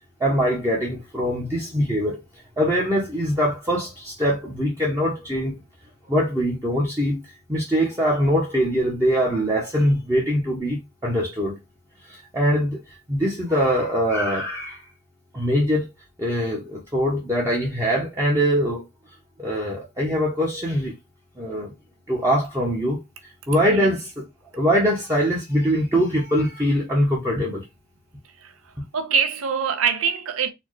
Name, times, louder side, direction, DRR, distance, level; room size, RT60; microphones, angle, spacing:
voice 1, 0.2-2.2 2.6-5.6 6.1-7.2 7.5-11.6 12.1-12.8 13.1-14.8 15.3-15.9 16.2-18.8 19.4-20.9 21.4-21.7 22.1-24.1 24.5-27.6, equal, 15° right, 0.8 m, -22 dB
voice 2, 28.9-30.5, right 6 dB, 80° right, 0.6 m, -23 dB
4.2 x 2.3 x 3.1 m
head